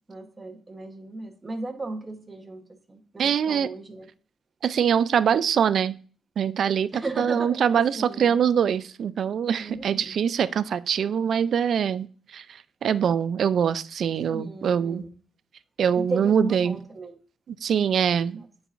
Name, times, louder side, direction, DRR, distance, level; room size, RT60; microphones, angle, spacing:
voice 1, 0.1-2.6 2.9-4.1 6.9-8.4 9.6-10.1 14.3-15.1 16.0-17.2 18.4-18.5, right 2 dB, 20° right, 1.0 m, -35 dB
voice 2, 3.2-3.7 4.6-5.9 6.4-15.0 15.8-16.8 17.5-18.4, right 8 dB, 55° right, 0.3 m, -24 dB
8.9 x 4.7 x 2.5 m
cardioid pair, 135°, 0 cm